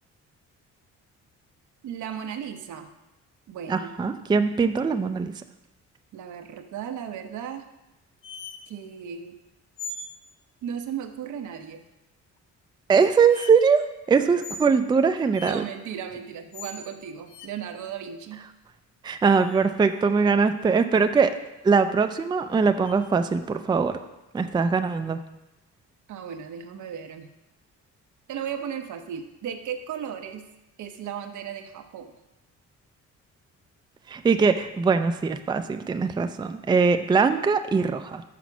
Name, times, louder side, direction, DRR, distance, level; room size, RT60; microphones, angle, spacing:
voice 1, 1.8-2.9 3.5-3.9 6.1-7.7 8.7-9.4 10.6-11.8 15.2-18.4 26.1-27.3 28.3-30.5 30.8-32.1, right 8 dB, 75° right, 6 dB, 0.8 m, -35 dB
voice 2, 3.7-5.3 12.9-15.6 19.0-21.3 21.6-24.0 24.3-25.2 34.1-38.2, right 5 dB, 15° right, 8 dB, 0.4 m, -22 dB
sound 1, 8.2-8.6 9.8-10.1 12.4-12.5 13.3-13.5 14.4-14.7 15.3-15.6 16.5-16.8 17.3-17.5 19.3-19.9 22.8-22.9, left 3 dB, 90° left, 0.7 m, -39 dB
6.0 x 5.1 x 5.9 m, 0.95 s
cardioid pair, 90°, 30 cm